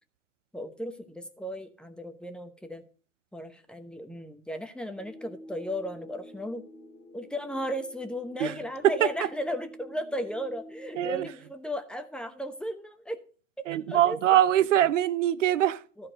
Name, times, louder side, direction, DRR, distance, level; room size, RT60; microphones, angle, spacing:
voice 1, 0.5-2.8 3.3-6.6 7.1-13.2 13.6-14.2 16.0-16.1, equal, ahead, 1.0 m, -35 dB
sound 1, 5.0-11.1, equal, 30° left, 2.1 m, -48 dB
voice 2, 11.0-11.3 13.7-15.8, right 12 dB, 75° right, 0.7 m, -23 dB
13.0 x 4.6 x 7.6 m
hypercardioid pair, 105°, 38 cm